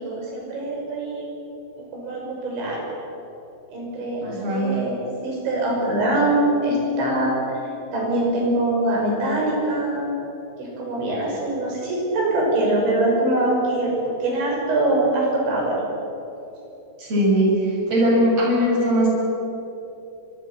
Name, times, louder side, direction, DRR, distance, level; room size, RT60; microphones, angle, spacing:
voice 1, 0.0-1.3 1.9-2.8 3.7-7.6 7.9-10.2 10.6-13.9 14.2-15.8, right 1 dB, 80° right, -1 dB, 8.5 m, -23 dB
voice 2, 4.2-4.7 17.0-19.1, equal, 35° right, -3 dB, 7.9 m, -20 dB
24.0 x 24.0 x 7.6 m, 3.0 s
omnidirectional pair, 5.2 m